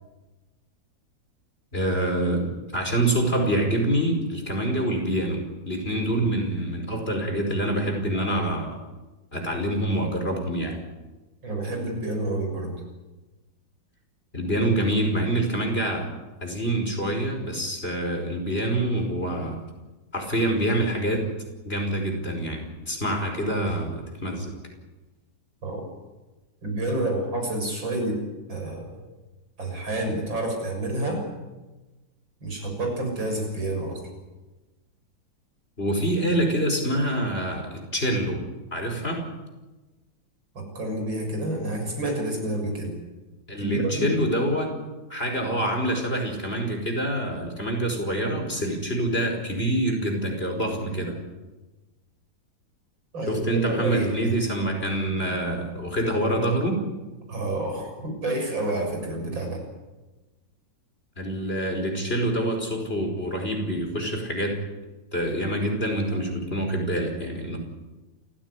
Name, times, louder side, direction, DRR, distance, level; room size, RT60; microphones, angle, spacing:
voice 1, 1.7-8.8 9.3-10.8 14.3-16.1 16.4-19.6 20.1-21.3 21.7-24.5 35.8-38.5 38.7-39.2 43.5-44.7 45.1-51.1 53.3-56.8 61.2-64.6 65.1-67.6, right 1 dB, 30° left, 3 dB, 5.3 m, -26 dB
voice 2, 11.4-12.7 25.6-25.9 26.6-28.2 28.5-29.0 29.6-31.2 32.4-34.0 40.5-42.9 43.6-44.1 50.8-51.1 53.1-54.1 57.3-59.6, right 1 dB, 75° right, 2 dB, 7.7 m, -29 dB
28.5 x 16.5 x 9.8 m, 1.1 s
omnidirectional pair, 2.1 m